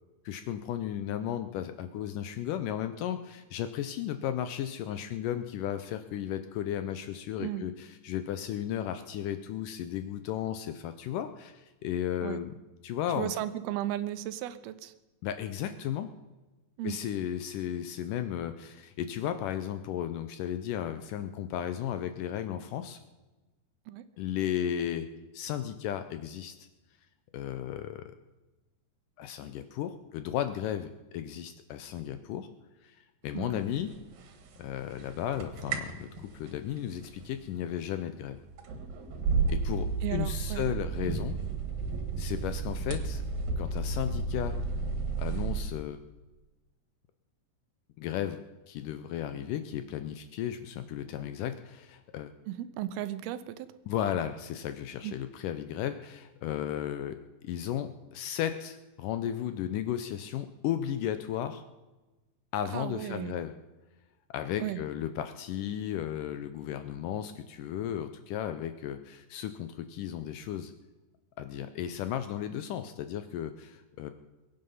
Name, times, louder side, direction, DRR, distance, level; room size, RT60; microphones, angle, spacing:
voice 1, 0.3-12.5 12.8-13.3 15.2-16.1 16.8-23.0 24.2-25.1 25.3-26.7 27.3-28.1 29.2-32.5 32.8-33.9 34.6-38.4 39.5-41.4 42.2-43.2 43.6-44.6 45.2-46.0 48.0-52.3 53.9-57.2 57.4-61.6 62.5-63.5 64.3-70.7 71.4-74.1, left 10 dB, 80° left, 10 dB, 2.0 m, -34 dB
voice 2, 13.2-14.9 16.8-17.0 23.9-24.0 33.3-33.6 40.0-40.7 52.5-53.7 55.0-55.1 62.7-63.4 64.6-64.8, right 12 dB, 90° right, 13 dB, 2.7 m, -35 dB
sound 1, 33.9-34.5 34.8-45.6, right 4 dB, 70° right, 3.2 m, -33 dB
22.5 x 9.3 x 5.6 m, 1.1 s
omnidirectional pair, 4.3 m